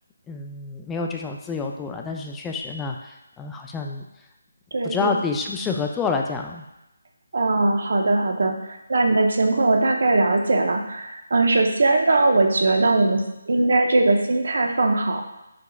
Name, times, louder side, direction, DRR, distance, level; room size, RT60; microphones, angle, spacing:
voice 1, 0.3-4.0 4.8-6.6, left 4 dB, 10° left, 2 dB, 0.3 m, -28 dB
voice 2, 4.7-5.2 7.3-13.2 13.5-15.2, right 2 dB, 65° right, 3 dB, 0.6 m, -20 dB
5.0 x 4.6 x 2.3 m, 0.93 s
figure-of-eight pair, 160°, 0 cm